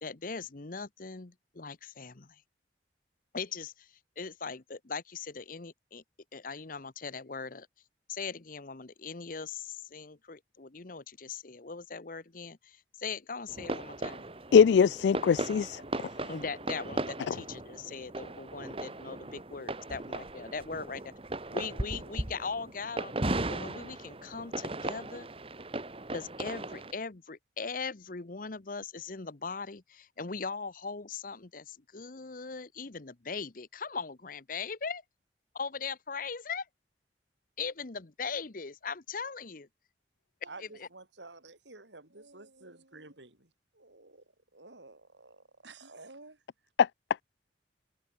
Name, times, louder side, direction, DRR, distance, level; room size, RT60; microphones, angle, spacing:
voice 1, 0.0-2.4 3.3-3.9 4.2-6.0 6.3-7.7 8.1-14.3 16.3-21.1 21.5-23.2 23.5-25.3 26.1-35.0 35.5-36.7 37.6-39.7 40.6-40.9, left 5 dB, 50° left, 1.0 m, -40 dB
sound 1, 13.5-26.9, right 2 dB, 30° right, 2.1 m, -37 dB
voice 2, 14.5-16.1 17.3-17.4 46.8-46.9, left 6 dB, 70° left, 0.3 m, -22 dB
voice 3, 40.4-43.5 43.7-44.2 44.5-46.4, right 3 dB, 85° right, 6.5 m, -51 dB
head